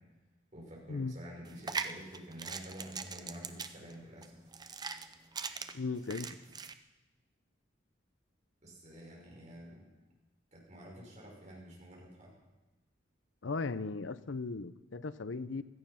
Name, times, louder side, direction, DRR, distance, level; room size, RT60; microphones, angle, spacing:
voice 1, 0.5-4.4 8.6-9.9 10.5-12.3, equal, 35° right, -3 dB, 5.6 m, -49 dB
sound 1, 1.5-6.7, right 5 dB, 20° right, 0.5 m, -41 dB
voice 2, 5.7-6.3 13.4-15.6, left 4 dB, 75° left, 14 dB, 0.6 m, -37 dB
16.5 x 13.0 x 5.7 m, 1.1 s
head